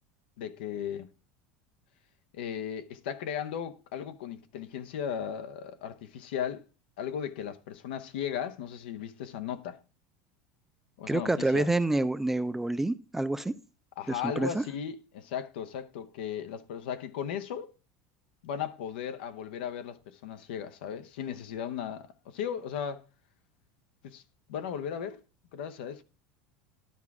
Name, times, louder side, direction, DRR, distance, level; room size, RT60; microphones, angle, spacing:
voice 1, 0.4-1.1 2.3-6.6 7.0-9.8 11.0-11.7 14.0-17.7 18.4-23.0 24.0-24.2 24.5-25.2 25.5-26.0, left 8 dB, 90° left, 0.8 m, -36 dB
voice 2, 11.1-13.5 14.1-14.6, right 2 dB, 5° right, 0.3 m, -28 dB
12.0 x 4.7 x 3.5 m
supercardioid pair, 150°, 5 cm